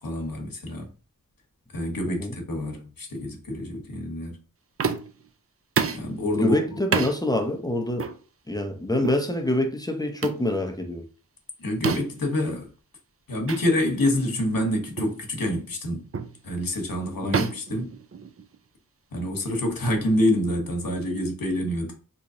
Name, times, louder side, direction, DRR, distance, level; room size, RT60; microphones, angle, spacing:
voice 1, 0.0-0.9 1.7-4.4 5.9-6.8 11.6-12.7 13.3-16.1 16.4-17.9 19.1-21.9, left 1 dB, 70° left, 1.0 m, -27 dB
sound 1, 4.8-5.2 5.8-6.1 6.9-7.2 8.0-8.2 9.0-9.2 10.2-10.5 11.8-12.2 13.5-13.6 14.1-14.2 15.0-15.2 16.1-16.4 17.3-18.5, right 6 dB, 40° right, 0.4 m, -28 dB
voice 2, 6.3-8.1 8.5-11.0 17.2-17.5, left 1 dB, 10° left, 0.6 m, -26 dB
3.7 x 3.0 x 2.6 m
wide cardioid pair, 50°, 35 cm